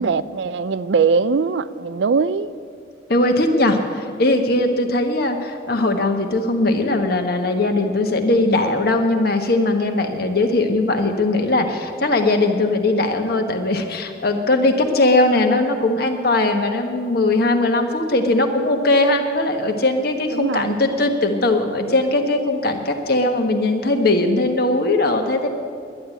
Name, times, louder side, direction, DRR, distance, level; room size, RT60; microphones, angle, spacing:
voice 1, 0.0-2.5 20.3-20.8, right 5 dB, 80° right, 15 dB, 0.4 m, -21 dB
voice 2, 3.1-25.5, left 2 dB, 55° left, 5 dB, 1.3 m, -19 dB
11.0 x 10.0 x 9.0 m, 2.3 s
head